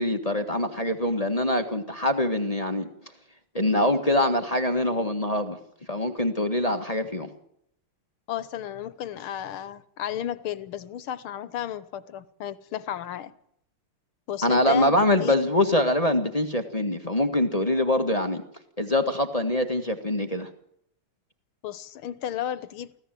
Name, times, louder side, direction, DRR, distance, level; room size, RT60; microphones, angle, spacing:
voice 1, 0.0-2.9 3.5-5.6 5.9-7.3 14.4-18.4 18.8-20.5, left 1 dB, 20° left, 1.4 m, -24 dB
voice 2, 8.3-13.3 14.3-15.5 21.6-22.9, left 10 dB, 75° left, 1.8 m, -33 dB
25.0 x 16.5 x 7.6 m
omnidirectional pair, 2.4 m